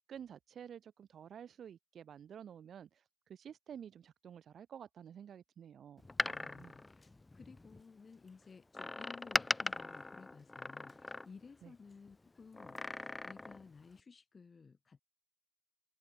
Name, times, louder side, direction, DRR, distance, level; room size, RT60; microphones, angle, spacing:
voice 1, 0.1-3.0 3.3-6.7 11.6-11.7, right 8 dB, 60° right, 0.7 m, -51 dB
Door, 6.0-7.8 8.7-11.6 12.5-13.7 14.0-14.1, left 2 dB, 15° left, 0.4 m, -39 dB
voice 2, 6.3-7.1 7.3-15.0, left 5 dB, 35° left, 2.2 m, -56 dB
cardioid pair, 135°, 0 cm